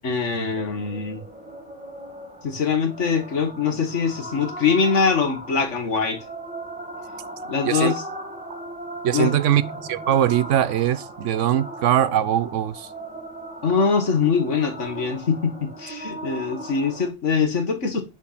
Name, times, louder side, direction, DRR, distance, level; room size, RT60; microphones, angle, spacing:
voice 1, 0.0-1.2 2.4-6.2 7.5-8.0 9.1-9.4 13.6-18.0, left 5 dB, 80° left, 1.9 m, -23 dB
sound 1, 0.5-17.1, right 1 dB, 5° right, 1.9 m, -37 dB
voice 2, 7.6-7.9 9.0-12.9, right 11 dB, 85° right, 1.1 m, -21 dB
9.2 x 4.5 x 5.8 m
omnidirectional pair, 1.2 m